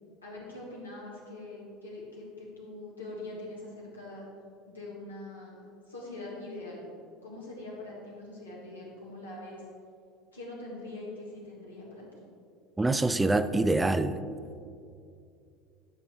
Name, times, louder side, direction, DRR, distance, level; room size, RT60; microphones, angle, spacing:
voice 1, 0.2-4.3 4.7-6.8 7.2-9.6 10.3-12.2, left 2 dB, 85° left, -4 dB, 1.7 m, -43 dB
voice 2, 12.8-14.2, right 2 dB, 15° right, 12 dB, 0.4 m, -25 dB
9.9 x 6.0 x 3.1 m, 2.4 s
figure-of-eight pair, 70°, 0 cm